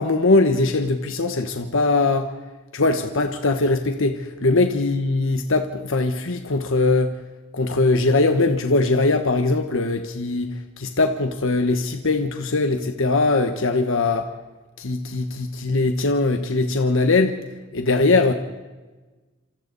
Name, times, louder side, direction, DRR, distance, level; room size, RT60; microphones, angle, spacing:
voice 1, 0.0-2.3 2.7-7.1 7.5-14.3 14.8-17.4 17.7-18.3, left 3 dB, 65° left, 6 dB, 1.2 m, -21 dB
27.5 x 26.5 x 4.1 m, 1.2 s
head